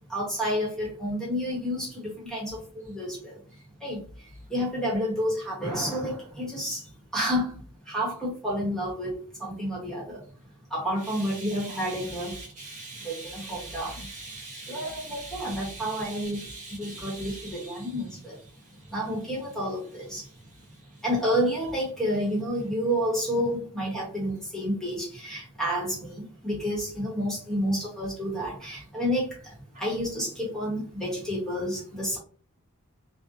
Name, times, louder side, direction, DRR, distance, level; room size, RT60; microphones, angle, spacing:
voice 1, 0.1-3.4 3.8-4.0 4.5-6.8 7.1-7.5 7.9-10.2 10.7-12.4 13.0-14.1 14.7-16.5 16.7-18.4 18.9-20.2 21.0-29.4 29.8-32.2, equal, ahead, 0.9 m, -30 dB
voice 2, 11.0-17.9 18.8-18.9, right 2 dB, 35° right, 0.4 m, -42 dB
2.5 x 2.1 x 2.5 m
head